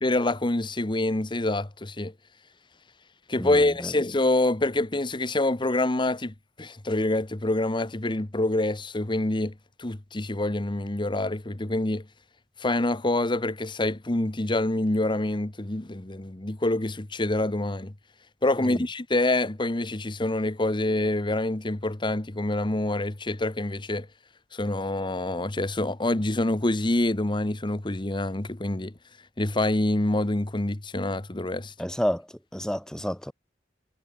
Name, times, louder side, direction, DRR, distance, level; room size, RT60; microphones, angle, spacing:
voice 1, 0.0-2.1 3.3-9.5 9.8-12.0 12.6-17.9 18.4-24.1 24.5-28.9 29.4-31.7, left 2 dB, 30° left, 1.1 m, -26 dB
voice 2, 3.4-3.9 18.6-18.8 31.8-32.3 32.5-33.3, equal, 5° left, 3.7 m, -30 dB
head